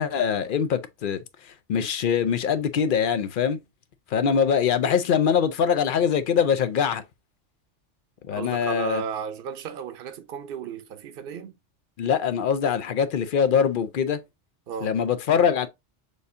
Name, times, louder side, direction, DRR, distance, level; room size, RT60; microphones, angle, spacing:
voice 1, 0.0-3.6 4.1-7.0 8.3-9.0 12.0-14.2 14.8-15.7, left 7 dB, 60° left, 0.6 m, -23 dB
voice 2, 8.3-11.6 14.7-15.0, right 7 dB, 55° right, 0.8 m, -34 dB
6.5 x 2.7 x 2.5 m
omnidirectional pair, 1.2 m